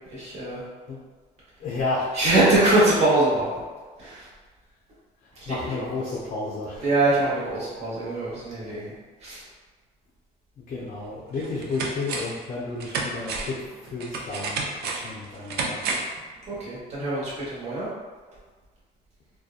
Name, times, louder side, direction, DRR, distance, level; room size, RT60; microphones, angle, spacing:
voice 1, 0.1-0.6 2.1-3.6 4.0-4.3 6.8-8.9 9.2-9.4 16.5-17.9, right 2 dB, 40° right, -8 dB, 1.0 m, -23 dB
voice 2, 1.6-2.2 5.5-6.9 10.6-15.8, left 3 dB, 45° left, -4 dB, 0.5 m, -32 dB
sound 1, 10.8-10.9 11.4-12.4 12.8-16.2 16.5-16.6, right 3 dB, 70° right, 0.4 m, -31 dB
2.7 x 2.2 x 2.4 m, 1.4 s
cardioid pair, 110°, 17 cm